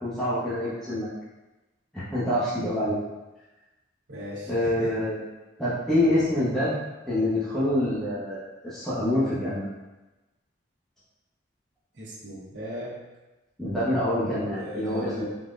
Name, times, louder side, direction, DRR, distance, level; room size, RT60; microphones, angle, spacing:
voice 1, 0.0-1.1 1.9-3.0 4.5-5.2 5.6-6.8 7.1-9.7 13.6-15.2, left 1 dB, ahead, -12 dB, 0.9 m, -26 dB
voice 2, 4.1-4.9 12.0-13.0 14.6-15.2, equal, 70° right, -5 dB, 1.1 m, -37 dB
3.8 x 3.6 x 2.5 m, 1.1 s
head